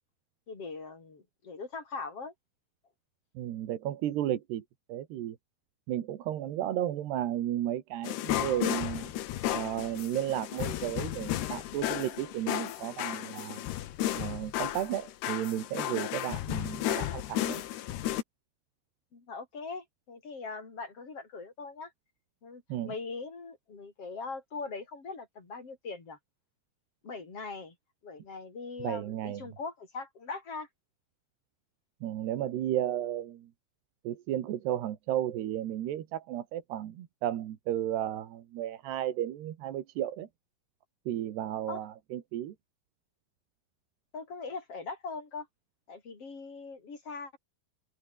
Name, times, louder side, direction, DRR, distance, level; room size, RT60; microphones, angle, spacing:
voice 1, 0.5-2.3 19.1-21.9 22.4-26.2 27.0-27.8 28.0-30.7 41.7-41.9 44.1-45.5 45.9-47.4, left 4 dB, 35° left, 5.8 m, -41 dB
voice 2, 3.4-4.6 4.9-5.4 5.9-9.1 9.5-13.6 14.1-17.6 22.7-22.9 28.8-29.4 32.0-33.5 34.1-40.3 41.1-42.5, right 12 dB, 85° right, 3.8 m, -33 dB
sound 1, 8.0-18.2, left 13 dB, 85° left, 3.6 m, -33 dB
open air
omnidirectional pair, 4.7 m